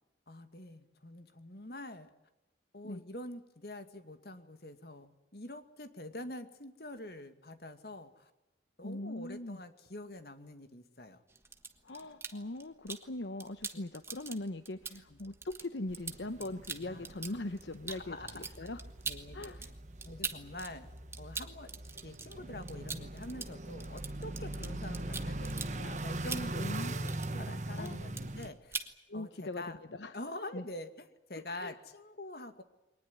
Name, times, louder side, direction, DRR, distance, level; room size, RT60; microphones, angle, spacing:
voice 1, 0.3-2.1 2.7-8.3 8.8-11.2 14.9-15.2 16.9-17.3 17.9-18.4 19.1-19.7 20.0-20.9 21.2-21.7 22.0-28.8 29.1-29.8 30.1-32.6, left 1 dB, 60° left, 9 dB, 2.2 m, -46 dB
voice 2, 8.8-9.6 11.8-18.8 19.3-19.7 26.6-26.9 27.4-28.0 29.1-30.1 30.5-30.6 31.6-31.7, left 2 dB, 80° left, 11 dB, 1.0 m, -41 dB
sound 1, 11.3-13.1 13.4-20.7 21.0-27.5 27.8-28.4 28.7-28.9, right 4 dB, 15° right, 1.4 m, -42 dB
sound 2, 15.9-28.5, right 2 dB, 40° right, 1.4 m, -41 dB
23.0 x 19.5 x 9.7 m, 0.99 s
head